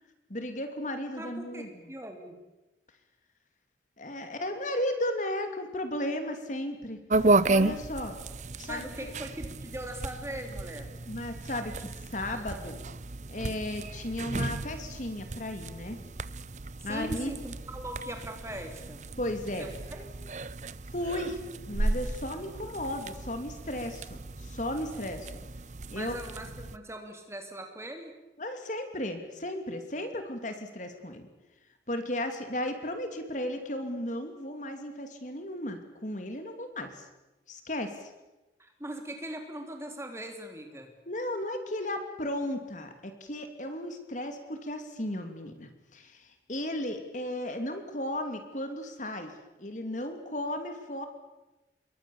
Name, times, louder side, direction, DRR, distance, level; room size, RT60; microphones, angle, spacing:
voice 1, 0.3-1.9 4.0-7.0 7.5-8.2 8.6-9.1 11.1-12.8 13.3-16.0 16.8-17.3 19.2-19.7 20.9-21.4 21.7-25.5 25.9-26.2 28.4-31.3 31.9-37.1 37.5-38.1 41.1-49.3 49.6-51.0, left 1 dB, 40° left, 7 dB, 2.8 m, -35 dB
voice 2, 1.1-2.4 8.7-10.9 16.8-19.0 19.6-20.1 25.9-28.1 38.6-40.9, right 1 dB, 15° right, 4 dB, 3.3 m, -40 dB
sound 1, 7.1-26.8, right 2 dB, 40° right, 0.8 m, -33 dB
28.0 x 22.5 x 7.2 m, 1.0 s
head